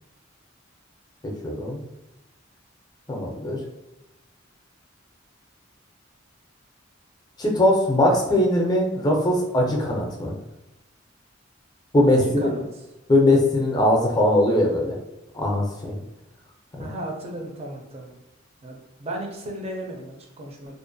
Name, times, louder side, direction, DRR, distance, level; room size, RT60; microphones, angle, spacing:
voice 1, 1.4-1.8 3.1-3.6 7.4-10.4 11.9-12.6 13.1-15.0 15.3-15.9 16.8-16.9, left 1 dB, 20° left, 0 dB, 0.5 m, -20 dB
voice 2, 12.0-12.6 16.8-18.2 18.6-20.8, right 1 dB, 30° right, 1 dB, 0.5 m, -35 dB
2.5 x 2.1 x 2.6 m, 0.96 s
head